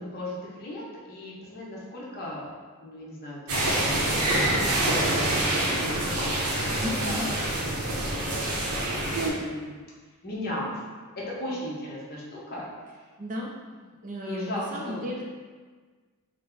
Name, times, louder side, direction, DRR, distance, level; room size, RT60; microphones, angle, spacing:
voice 1, 0.0-2.5 2.8-8.3 9.1-9.8 10.2-10.8 11.2-12.6 14.2-15.1, left 1 dB, 45° left, -5 dB, 0.9 m, -37 dB
sound 1, 3.5-9.3, right 1 dB, 90° right, 1.0 m, -26 dB
voice 2, 6.8-7.3 13.2-13.5 14.0-15.2, left 1 dB, 35° right, -2 dB, 0.5 m, -34 dB
5.0 x 2.2 x 3.8 m, 1.5 s
head